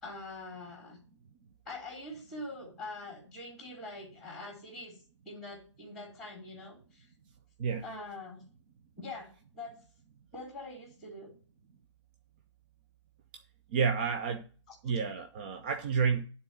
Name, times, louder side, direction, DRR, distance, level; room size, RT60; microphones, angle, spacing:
voice 1, 0.0-1.0 1.7-5.0 5.3-7.1 7.8-8.4 9.0-9.7 10.3-11.3 14.7-15.0, left 2 dB, ahead, 2.1 m, -44 dB
voice 2, 13.7-14.4 14.8-16.2, right 6 dB, 20° right, 0.4 m, -30 dB
9.6 x 3.9 x 6.8 m
figure-of-eight pair, 140°, 15 cm